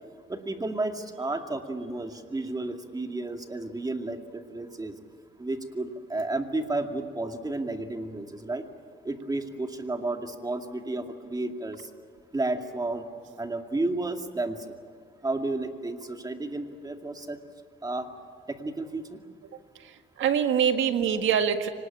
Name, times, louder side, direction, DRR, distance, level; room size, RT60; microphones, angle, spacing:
voice 1, 0.3-4.9 5.4-8.6 9.0-11.9 12.3-13.1 13.4-14.7 15.2-17.4 17.8-18.1 18.5-19.2, right 2 dB, 20° right, 5 dB, 2.3 m, -32 dB
voice 2, 19.8-21.7, right 8 dB, 75° right, 7 dB, 1.7 m, -24 dB
25.0 x 19.5 x 8.9 m, 2.2 s
cardioid pair, 90°, 20 cm